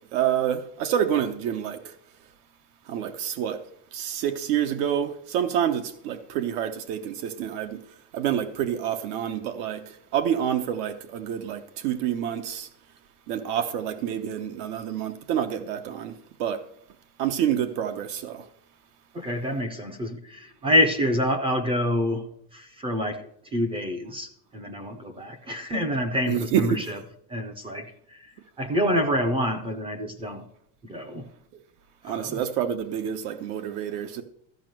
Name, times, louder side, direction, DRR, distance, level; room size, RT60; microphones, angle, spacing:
voice 1, 0.1-1.9 2.9-3.6 3.9-7.8 8.1-9.8 10.1-12.7 13.3-16.6 17.2-18.4 26.3-26.8 32.0-34.2, right 9 dB, 80° right, 1.1 m, -28 dB
voice 2, 19.1-27.0 27.3-30.5 30.8-31.2 32.0-32.4, left 1 dB, 15° right, 0.4 m, -27 dB
13.5 x 5.3 x 7.6 m
cardioid pair, 175°, 46 cm